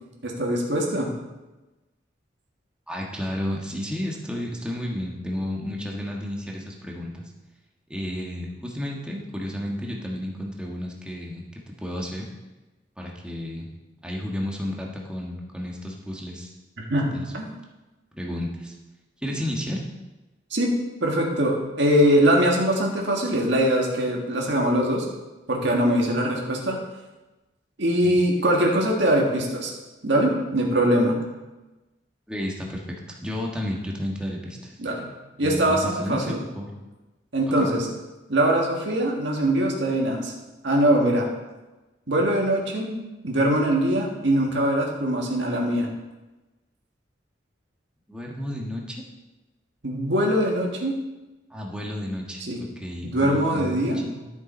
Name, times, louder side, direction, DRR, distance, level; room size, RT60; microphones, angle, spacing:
voice 1, 0.2-1.1 16.8-17.5 19.3-19.4 20.5-20.7 21.0-25.0 25.5-26.8 27.8-29.7 30.0-31.2 34.8-35.1 35.4-36.4 37.3-37.9 38.3-40.3 40.6-41.3 42.1-45.9 49.8-51.0 52.5-52.6 53.0-54.0, right 1 dB, 65° right, -1 dB, 1.8 m, -22 dB
voice 2, 2.9-7.3 7.9-12.3 13.0-13.7 14.0-16.5 17.1-17.2 18.1-18.8 19.2-19.8 28.0-28.2 32.3-32.8 33.1-34.8 35.4-36.7 37.5-37.6 48.1-49.0 51.5-54.3, left 1 dB, 5° right, -1 dB, 1.4 m, -32 dB
12.0 x 7.0 x 4.4 m, 1.1 s
head